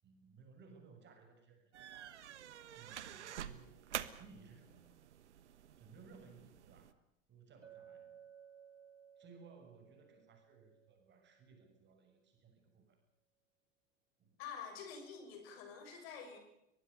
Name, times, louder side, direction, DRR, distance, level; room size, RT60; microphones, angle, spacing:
voice 1, 0.0-2.2 2.8-3.8 4.2-4.9 5.8-6.9 7.3-8.3 9.2-13.0 14.2-14.4, right 5 dB, 30° right, 5 dB, 7.0 m, -60 dB
sound 1, 1.7-6.9, right 10 dB, 65° right, 1.5 m, -48 dB
Chink clink, 7.6-11.6, right 8 dB, 85° right, 2.5 m, -60 dB
voice 2, 14.4-16.4, left 6 dB, 55° left, 6 dB, 7.0 m, -48 dB
23.5 x 21.0 x 6.8 m, 0.86 s
figure-of-eight pair, 80°, 37 cm